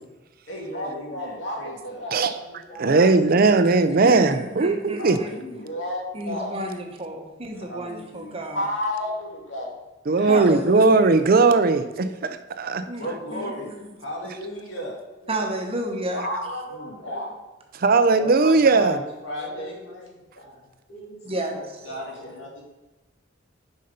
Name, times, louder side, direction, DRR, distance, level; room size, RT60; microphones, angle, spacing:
voice 1, 0.5-2.3 2.8-3.1 4.0-4.2 5.0-6.6 7.6-9.7 10.2-10.7 13.0-13.7 14.0-15.0 16.1-17.3 18.2-19.8 21.8-22.6, left 1 dB, 90° left, -2 dB, 2.3 m, -33 dB
voice 2, 2.0-3.5 8.9-9.0 14.7-14.9 15.2-15.4 16.8-17.2 19.4-21.7 22.2-22.5, equal, 60° left, -3 dB, 2.5 m, -45 dB
voice 3, 2.8-5.2 10.1-12.8 17.7-19.0, right 3 dB, 50° right, 10 dB, 0.5 m, -18 dB
voice 4, 4.0-5.3 6.1-8.7 10.3-11.1 12.9-13.9 15.3-16.3 21.2-21.6, right 1 dB, 30° right, 2 dB, 1.1 m, -31 dB
6.5 x 5.5 x 5.4 m, 1.1 s
head